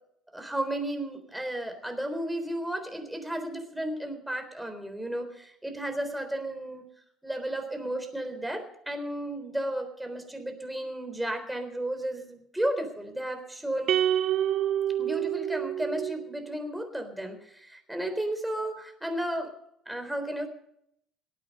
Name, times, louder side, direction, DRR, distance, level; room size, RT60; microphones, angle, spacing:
voice 1, 0.3-6.8 7.2-13.9 15.0-19.5 19.9-20.5, right 1 dB, 5° right, 5 dB, 3.8 m, -33 dB
sound 1, 13.9-16.3, right 11 dB, 55° right, 0.6 m, -27 dB
18.5 x 9.0 x 6.6 m, 0.73 s
hypercardioid pair, 60°, 0 cm